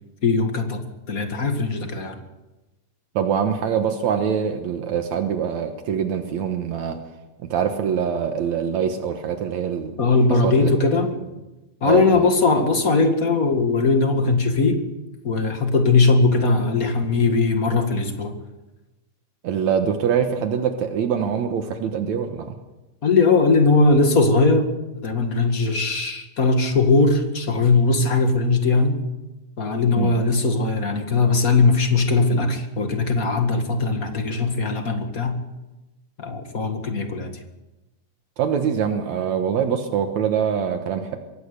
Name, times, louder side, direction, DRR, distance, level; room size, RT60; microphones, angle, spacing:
voice 1, 0.2-2.2 10.0-11.1 11.8-14.8 15.2-18.4 23.0-24.7 25.0-29.0 29.6-35.4 36.2-37.4, left 3 dB, 35° left, 5 dB, 1.9 m, -19 dB
voice 2, 3.1-7.0 7.5-10.0 10.4-10.7 11.1-11.3 11.9-12.2 19.4-22.6 29.9-30.1 38.4-41.2, right 7 dB, 75° right, 6 dB, 2.6 m, -24 dB
23.0 x 17.5 x 6.7 m, 1.0 s
omnidirectional pair, 3.3 m